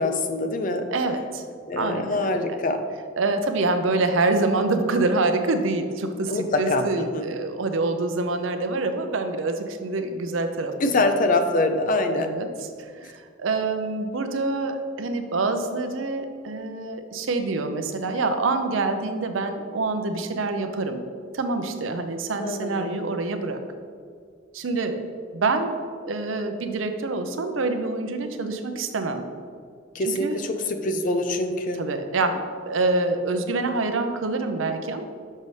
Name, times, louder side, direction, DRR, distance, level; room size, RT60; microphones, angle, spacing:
voice 1, 0.0-0.9 1.7-2.8 6.3-7.3 10.8-12.3 22.4-23.0 29.9-31.8, left 2 dB, 45° left, 7 dB, 0.5 m, -24 dB
voice 2, 0.9-1.4 1.8-2.6 3.2-11.0 12.1-21.0 21.3-23.6 24.5-25.0 25.3-25.7 26.0-29.3 30.0-30.4 31.8-35.0, right 3 dB, 80° right, 7 dB, 0.6 m, -26 dB
6.4 x 5.4 x 3.2 m, 2.1 s
head